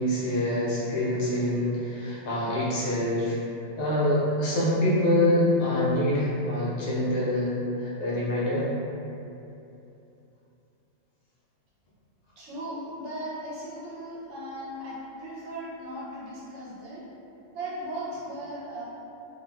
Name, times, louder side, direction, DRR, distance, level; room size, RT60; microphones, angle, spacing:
voice 1, 0.0-3.4 3.8-8.7, left 1 dB, 65° left, -7 dB, 0.9 m, -25 dB
voice 2, 12.4-17.0 17.5-18.8, right 1 dB, 70° right, -6 dB, 0.9 m, -37 dB
2.5 x 2.2 x 3.3 m, 2.8 s
omnidirectional pair, 1.3 m